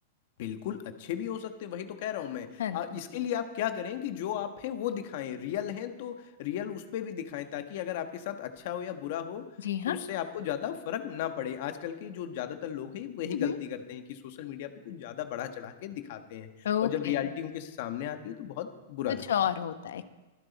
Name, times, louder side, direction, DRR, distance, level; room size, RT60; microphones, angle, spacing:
voice 1, 0.4-9.5 9.8-16.5 16.8-19.2, left 10 dB, 45° left, 8 dB, 1.3 m, -35 dB
voice 2, 9.6-10.0 13.3-13.6 16.6-17.2 19.1-20.1, left 9 dB, 90° left, 10 dB, 1.1 m, -30 dB
24.0 x 11.0 x 4.2 m, 1.1 s
supercardioid pair, 175°, 0 cm